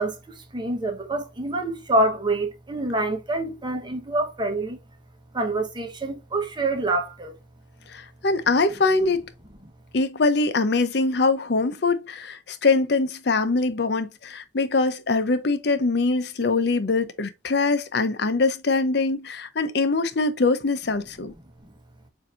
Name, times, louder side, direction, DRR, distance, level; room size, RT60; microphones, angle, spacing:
voice 1, 0.0-4.8 5.3-7.3, right 2 dB, 25° right, 1.0 m, -26 dB
voice 2, 7.9-9.3 9.9-21.3, left 3 dB, 60° left, 0.6 m, -23 dB
7.0 x 2.7 x 2.5 m
head